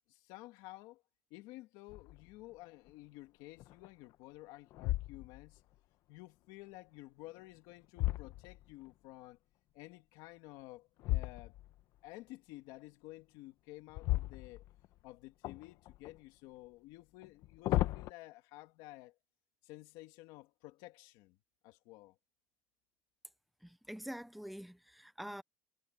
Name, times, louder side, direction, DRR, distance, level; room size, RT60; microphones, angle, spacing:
voice 1, 0.1-1.0 1.3-5.6 6.1-9.4 9.7-11.5 12.0-14.6 15.0-19.2 19.6-21.4 21.6-22.2, left 18 dB, 70° left, 1.9 m, -53 dB
sound 1, 1.9-2.3 2.9-3.0 3.6-4.2 4.7-5.6 7.3-8.9 11.0-11.8 13.9-15.0 15.4-16.2 17.2-18.1, left 16 dB, 50° left, 0.9 m, -36 dB
voice 2, 23.6-25.4, equal, ahead, 0.5 m, -46 dB
cardioid pair, 170°, 7 cm